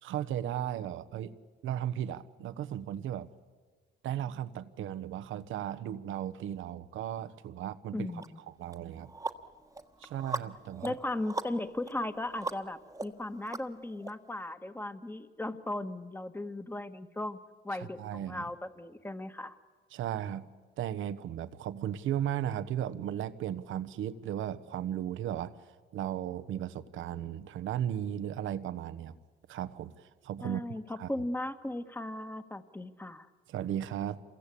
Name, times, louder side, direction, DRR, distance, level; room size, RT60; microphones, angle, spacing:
voice 1, 0.0-1.4 1.6-3.3 4.0-8.1 8.6-9.1 10.0-10.9 17.8-18.4 19.9-20.5 20.8-25.6 25.9-29.2 29.5-31.1 33.5-34.2, right 10 dB, 80° right, 13 dB, 1.1 m, -36 dB
voice 2, 7.9-8.4 10.8-17.4 17.6-19.6 30.4-33.3, left 1 dB, 10° left, 10 dB, 1.5 m, -37 dB
sound 1, 8.2-8.3 8.7-14.1, right 3 dB, 15° right, 1.4 m, -40 dB
27.5 x 22.5 x 8.5 m, 1.5 s
cardioid pair, 90°, 20 cm